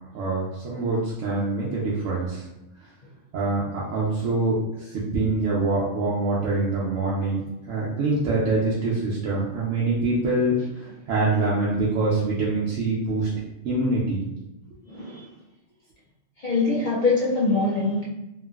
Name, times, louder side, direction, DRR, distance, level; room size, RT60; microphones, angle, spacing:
voice 1, 0.1-2.4 3.3-10.5 10.8-13.3 13.6-14.2, right 2 dB, 80° right, -8 dB, 1.0 m, -25 dB
voice 2, 14.9-15.3 16.4-18.0, left 3 dB, 60° left, -7 dB, 0.5 m, -23 dB
2.9 x 2.5 x 2.3 m, 0.94 s
omnidirectional pair, 1.3 m